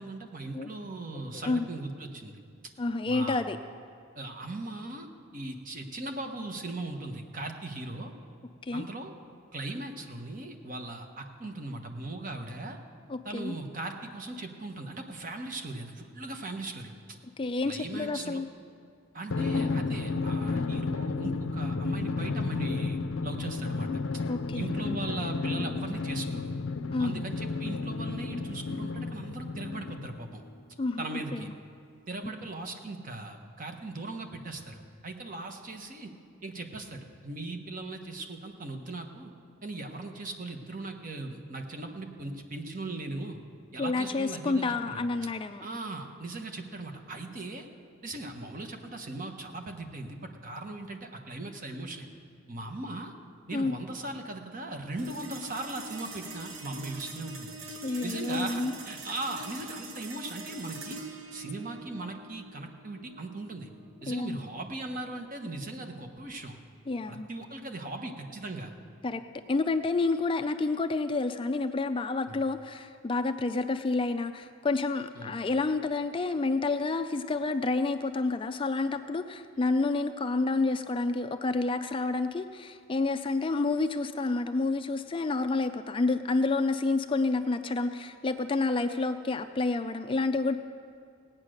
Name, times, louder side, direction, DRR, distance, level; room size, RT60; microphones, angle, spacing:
voice 1, 0.0-2.4 3.1-3.4 4.1-5.1 5.3-8.1 8.7-9.1 9.5-12.8 13.2-16.9 17.6-18.4 19.1-23.9 24.5-26.5 27.0-30.4 31.0-31.5 32.1-36.1 36.4-39.3 39.6-43.4 43.7-45.0 45.6-47.7 48.0-52.0 52.5-53.1 53.5-57.5 58.0-61.0 61.3-63.7 64.0-66.6 67.1-68.7 72.3-72.4 75.2-75.3, right 2 dB, 40° right, 4 dB, 1.2 m, -38 dB
voice 2, 1.1-1.7 2.8-3.6 8.6-8.8 13.1-13.5 17.4-18.5 24.3-25.0 26.9-27.3 30.8-31.0 31.3-31.5 43.8-45.7 53.5-53.8 57.8-58.7 64.1-64.4 66.9-67.3 69.0-69.2 69.5-90.6, left 3 dB, 25° left, 9 dB, 0.4 m, -29 dB
Drum, 19.3-30.3, left 4 dB, 80° left, 0.5 m, -32 dB
sound 1, 55.0-65.6, right 2 dB, 75° right, 1.1 m, -44 dB
17.0 x 9.0 x 6.4 m, 2.3 s
head